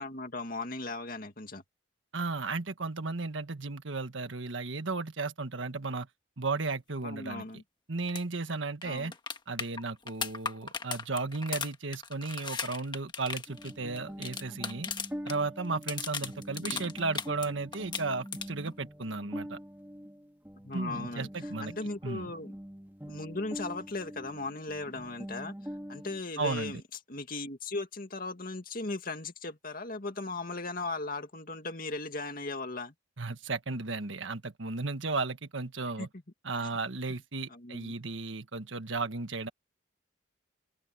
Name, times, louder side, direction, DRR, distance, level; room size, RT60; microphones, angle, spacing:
voice 1, 0.0-1.6 7.0-7.6 8.8-9.1 16.6-16.9 20.6-21.3 21.6-22.5 23.1-25.5 25.9-26.8 27.1-32.9 36.0-36.1 37.5-37.9, left 3 dB, 45° left, 2.2 m, -37 dB
voice 2, 2.1-6.1 6.4-7.5 7.9-9.1 9.5-14.9 15.2-19.6 20.7-21.7 22.0-22.3 26.4-26.8 33.2-36.1 36.4-39.5, right 3 dB, 75° right, 1.5 m, -34 dB
sound 1, 8.1-8.2 8.5-8.6 8.8-15.4 15.6-17.5 17.7-18.7 20.7-20.8, left 5 dB, 25° left, 1.6 m, -37 dB
sound 2, 13.5-26.2, equal, 10° right, 1.9 m, -44 dB
open air
head